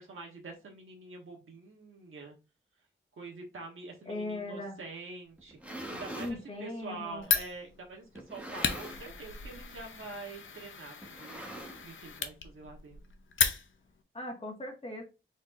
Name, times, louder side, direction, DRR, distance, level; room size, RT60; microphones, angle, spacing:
voice 1, 0.0-2.4 3.1-13.0, right 3 dB, 85° right, 0 dB, 1.2 m, -46 dB
voice 2, 4.0-4.8 6.2-7.2 14.1-15.0, left 2 dB, 30° left, 0 dB, 1.8 m, -38 dB
sound 1, 5.4-6.4 7.2-7.3 8.2-9.2 9.5-9.8 10.0-10.1 11.0-12.1, right 1 dB, 5° right, 1.3 m, -43 dB
Fire, 7.2-14.0, left 6 dB, 75° left, 0.7 m, -35 dB
4.3 x 4.2 x 2.6 m, 0.29 s
wide cardioid pair, 85°, 21 cm